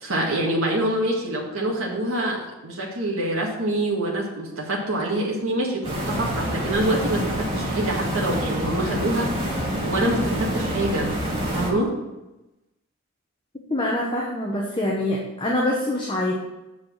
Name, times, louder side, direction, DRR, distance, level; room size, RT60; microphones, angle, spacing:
voice 1, 0.0-2.4 2.6-9.3 9.8-11.2 11.5-11.9, right 1 dB, 70° right, -3 dB, 1.9 m, -25 dB
sound 1, 5.8-11.7, equal, 25° right, 2.1 m, -27 dB
voice 2, 13.7-16.3, left 1 dB, 20° left, -2 dB, 1.1 m, -25 dB
8.3 x 4.8 x 7.4 m, 1.0 s
head